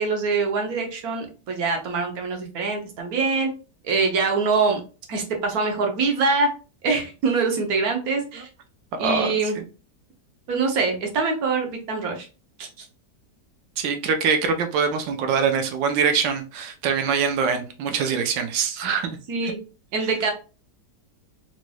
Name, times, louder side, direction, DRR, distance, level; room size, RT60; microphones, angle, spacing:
voice 1, 0.0-3.5 3.8-4.8 5.1-6.5 6.8-8.5 9.0-9.6 10.5-12.3 12.6-12.7 19.3-19.6 19.9-20.3, right 4 dB, 65° right, 1.2 m, -24 dB
voice 2, 9.0-9.6 13.8-19.2 19.4-19.5 20.0-20.1, right 6 dB, 90° right, 1.4 m, -24 dB
4.0 x 3.2 x 2.2 m
omnidirectional pair, 1.9 m